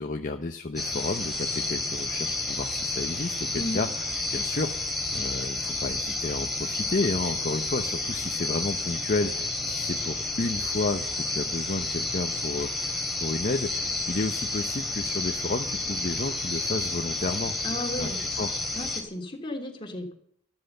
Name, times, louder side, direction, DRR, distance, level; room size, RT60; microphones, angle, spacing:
voice 1, 0.0-17.6 18.0-18.5, left 3 dB, 45° left, 5 dB, 0.8 m, -32 dB
sound 1, 0.8-19.0, left 2 dB, ahead, 3.3 m, -30 dB
voice 2, 17.6-18.2 18.7-20.1, left 1 dB, 25° left, 1 dB, 3.1 m, -34 dB
13.5 x 12.5 x 6.8 m, 0.65 s
head